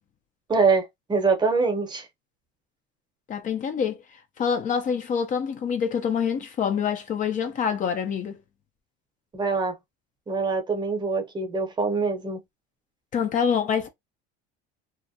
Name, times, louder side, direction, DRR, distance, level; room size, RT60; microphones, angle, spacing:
voice 1, 0.5-2.1 9.3-9.8 10.3-12.4, right 4 dB, 20° right, 0.8 m, -24 dB
voice 2, 3.3-4.0 4.4-8.4 13.1-13.9, left 7 dB, 40° left, 0.6 m, -26 dB
2.4 x 2.1 x 2.7 m
supercardioid pair, 115°, 21 cm